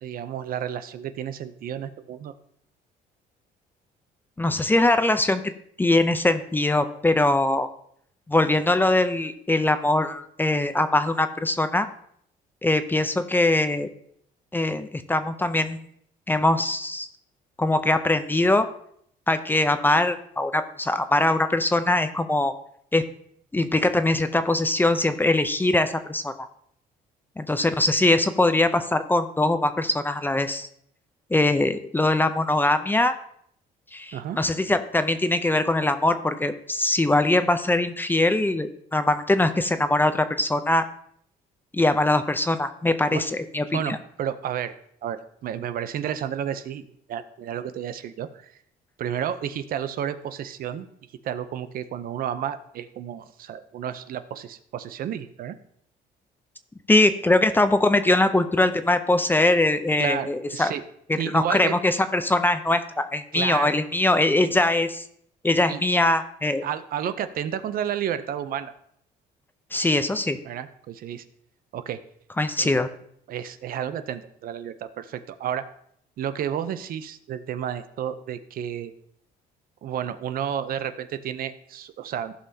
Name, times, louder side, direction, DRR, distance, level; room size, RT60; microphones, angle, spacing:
voice 1, 0.0-2.3 34.1-34.4 43.1-43.2 43.7-44.7 45.0-46.8 47.1-48.5 49.0-50.9 51.2-55.6 60.0-60.8 61.2-61.8 63.3-63.7 64.4-64.5 65.7-65.8 66.6-68.7 70.4-71.2 71.7-72.0 72.6-72.7 73.3-75.6 76.2-78.9 79.8-82.3, right 9 dB, 60° right, 11 dB, 0.6 m, -31 dB
voice 2, 4.4-5.4 5.8-7.7 8.3-11.9 12.6-13.9 14.5-15.8 16.3-17.1 17.6-18.7 19.3-22.5 22.9-23.0 23.5-26.5 27.4-30.7 31.3-33.1 33.9-40.9 41.7-44.0 56.9-60.7 61.1-65.0 65.4-66.6 69.7-70.4 72.4-72.9, left 2 dB, 10° left, 10 dB, 0.5 m, -22 dB
15.0 x 5.6 x 2.8 m, 0.68 s
cardioid pair, 110°, 17 cm